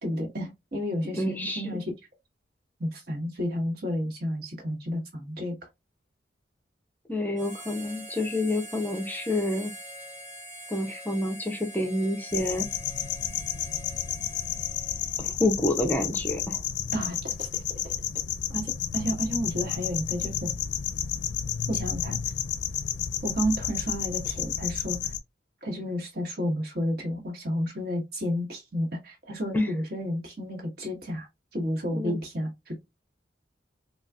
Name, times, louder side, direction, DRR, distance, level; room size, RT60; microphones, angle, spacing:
voice 1, 0.0-1.9 2.8-5.6 16.9-17.5 17.8-17.9 18.5-20.5 21.7-22.2 23.2-25.0 25.6-31.3 31.5-32.8, equal, 60° right, 1.3 m, -31 dB
voice 2, 1.1-1.6 7.1-9.7 10.7-12.7 15.2-16.6 29.5-29.7 31.9-32.2, left 1 dB, 10° left, 0.5 m, -28 dB
Harmonica, 7.3-15.4, equal, 40° right, 1.2 m, -44 dB
sound 1, 12.3-25.2, left 9 dB, 70° left, 0.4 m, -31 dB
3.8 x 2.3 x 2.3 m
head